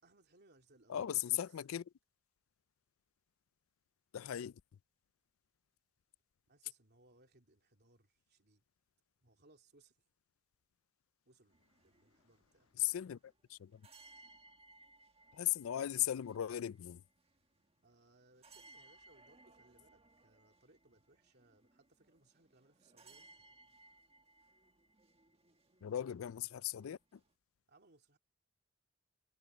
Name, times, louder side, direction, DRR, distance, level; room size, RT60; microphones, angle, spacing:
voice 1, 0.0-1.6 6.5-8.6 9.2-10.0 11.2-12.7 17.8-23.2 27.7-28.2, right 2 dB, 55° right, 3.0 m, -68 dB
voice 2, 0.9-1.8 4.1-4.6 12.8-13.2 13.5-13.8 15.3-17.0 25.8-27.2, left 12 dB, 85° left, 0.4 m, -37 dB
sound 1, 11.5-27.3, right 2 dB, 30° right, 1.7 m, -65 dB
head